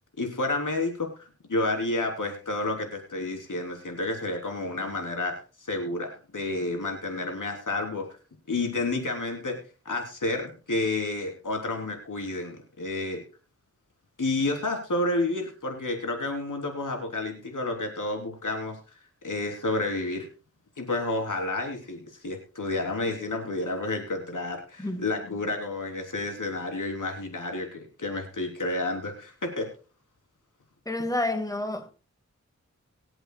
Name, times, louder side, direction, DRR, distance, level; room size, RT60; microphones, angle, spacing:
voice 1, 0.2-5.4 5.7-8.1 8.5-9.6 9.8-13.2 14.2-18.8 19.2-20.2 20.8-29.7, left 2 dB, 90° left, 3.5 m, -30 dB
voice 2, 30.9-31.9, left 2 dB, 10° left, 1.9 m, -29 dB
24.0 x 8.2 x 2.3 m
wide cardioid pair, 60°, 30 cm